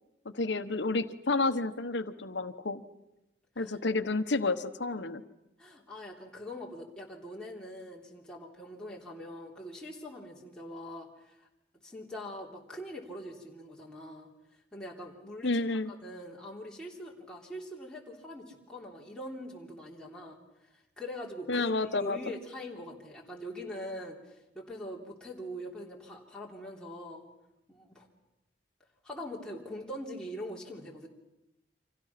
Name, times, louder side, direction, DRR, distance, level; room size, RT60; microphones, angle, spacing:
voice 1, 0.2-2.8 3.6-5.2 15.4-15.9 21.5-22.2, left 3 dB, 75° left, 10 dB, 1.2 m, -30 dB
voice 2, 5.6-11.5 11.8-14.3 14.7-27.3 27.7-28.1 29.0-31.1, equal, 5° left, -3 dB, 3.3 m, -43 dB
29.5 x 26.0 x 5.9 m, 0.93 s
head